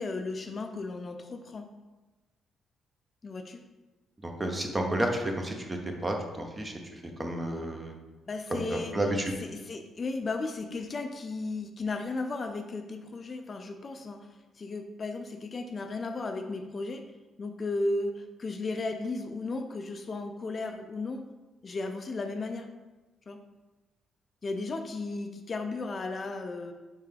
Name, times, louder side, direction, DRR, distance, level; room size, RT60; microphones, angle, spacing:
voice 1, 0.0-1.7 3.2-3.6 8.3-9.0 9.4-14.3 14.6-17.1 17.4-21.2 21.6-22.7 23.3-23.4 24.4-26.7, left 3 dB, 40° left, 6 dB, 0.3 m, -35 dB
voice 2, 4.2-6.7 7.2-7.9 8.5-9.3, right 1 dB, 20° right, 3 dB, 0.7 m, -31 dB
4.4 x 3.5 x 3.3 m, 1.2 s
cardioid pair, 90°, 0 cm